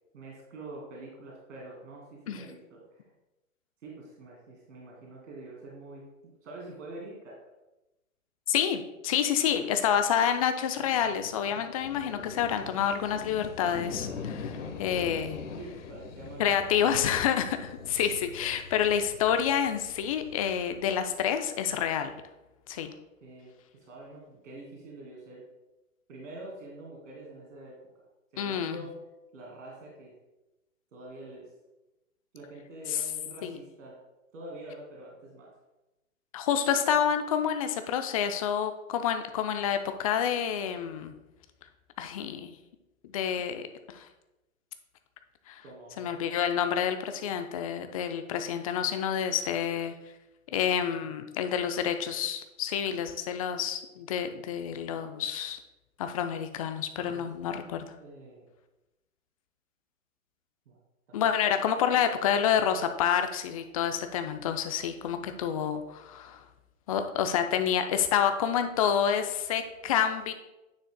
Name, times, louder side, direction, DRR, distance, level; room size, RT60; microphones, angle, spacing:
voice 1, 0.1-3.1 3.8-6.0 6.4-7.4 9.3-10.0 15.6-16.4 16.9-17.2 22.7-22.9 23.2-23.5 23.8-25.4 26.1-27.7 28.3-28.9 29.3-30.1 30.9-31.5 32.3-33.9 34.3-35.5 45.6-46.2 57.0-57.3 57.6-57.7 58.0-58.5 60.7-60.8 61.1-61.2, right 2 dB, 65° right, -2 dB, 2.3 m, -46 dB
voice 2, 8.5-15.4 16.4-22.1 22.7-22.9 28.4-28.8 32.9-33.0 33.4-33.6 36.3-41.1 42.0-42.5 43.0-43.6 43.9-44.1 45.5-45.6 46.0-49.9 50.5-55.6 56.0-57.8 61.1-66.4 66.9-70.3, left 8 dB, 25° left, 8 dB, 0.4 m, -28 dB
sound 1, 10.7-21.1, left 5 dB, 60° left, 1.1 m, -43 dB
9.6 x 6.1 x 2.2 m, 1.0 s
hypercardioid pair, 125°, 41 cm